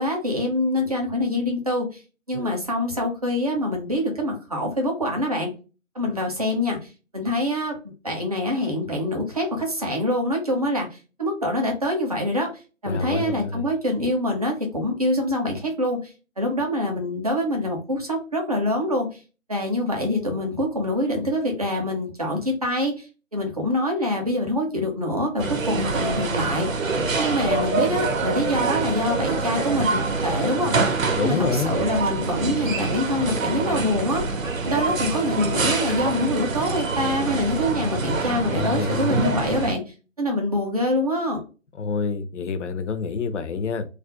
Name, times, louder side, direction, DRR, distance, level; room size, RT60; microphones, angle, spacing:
voice 1, 0.0-2.0 2.3-5.5 5.9-7.7 8.0-12.5 12.8-19.2 19.5-23.1 23.3-26.7 27.2-30.7 31.2-34.2 34.6-41.4, left 1 dB, 30° right, 1 dB, 0.5 m, -25 dB
voice 2, 12.9-13.6 31.2-31.7 38.5-39.4 41.8-43.9, left 5 dB, 65° left, 9 dB, 0.5 m, -27 dB
sound 1, 25.4-39.7, right 4 dB, 80° right, 0.7 m, -25 dB
2.4 x 2.1 x 3.4 m, 0.33 s
figure-of-eight pair, 155°, 39 cm